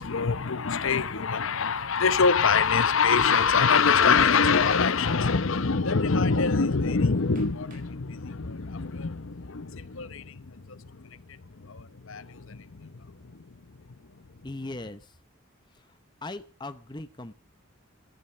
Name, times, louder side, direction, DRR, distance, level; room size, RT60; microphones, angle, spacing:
voice 1, 0.0-13.5, left 5 dB, 70° left, 0.8 m, -25 dB
Hammer, 3.9-4.8 5.7-5.8 6.4-6.5 7.3-7.9 8.5-9.0, right 4 dB, 40° right, 3.8 m, -54 dB
voice 2, 14.4-15.2 15.7-17.3, left 2 dB, 20° left, 0.8 m, -39 dB
13.5 x 10.5 x 7.8 m
head